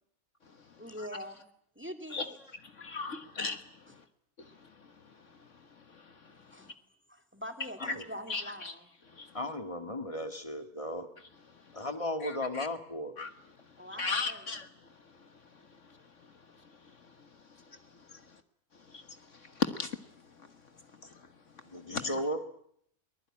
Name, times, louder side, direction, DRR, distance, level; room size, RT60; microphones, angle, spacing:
voice 1, 0.8-1.4 1.8-2.4 3.9-4.0 6.2-6.7 7.1-8.9 13.8-14.5, equal, 10° right, 2.3 m, -44 dB
voice 2, 2.8-3.6 4.4-4.5 5.9-6.1 8.3-8.7 9.1-9.3 12.2-12.7 13.2-13.3 13.9-14.7 18.1-18.2 18.9-19.0 19.4-19.9 21.9-22.1, left 4 dB, 55° left, 1.6 m, -35 dB
voice 3, 9.3-11.1 11.7-13.2 21.6-22.4, left 1 dB, 20° left, 2.0 m, -35 dB
22.5 x 20.5 x 10.0 m
omnidirectional pair, 1.5 m